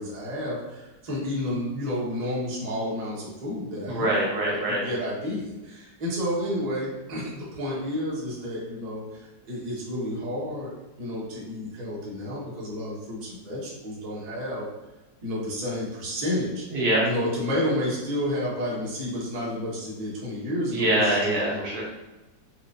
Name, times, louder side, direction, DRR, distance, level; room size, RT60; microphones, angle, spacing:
voice 1, 0.0-4.1 4.4-10.7 11.0-14.7 15.2-16.6 17.0-21.7, left 1 dB, 35° right, -6 dB, 0.7 m, -31 dB
voice 2, 3.9-4.8 16.7-17.0 20.7-21.8, right 1 dB, 65° right, -4 dB, 1.2 m, -24 dB
4.4 x 2.4 x 2.5 m, 1.1 s
omnidirectional pair, 2.0 m